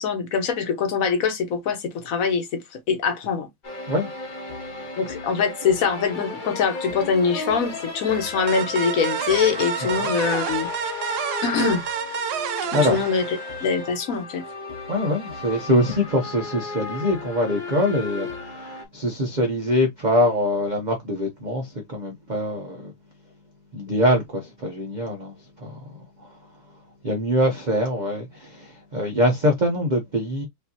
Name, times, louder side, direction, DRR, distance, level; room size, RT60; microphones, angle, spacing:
voice 1, 0.0-3.5 5.0-10.7 11.4-11.8 12.8-13.2 13.6-14.4, left 6 dB, 55° left, 1.3 m, -23 dB
sound 1, 3.6-18.8, left 3 dB, 35° left, 0.9 m, -34 dB
sound 2, 8.5-13.9, right 9 dB, 70° right, 1.1 m, -29 dB
voice 2, 14.9-22.9 23.7-26.4 27.0-30.4, equal, 50° right, 0.5 m, -24 dB
5.2 x 2.7 x 2.8 m
omnidirectional pair, 1.9 m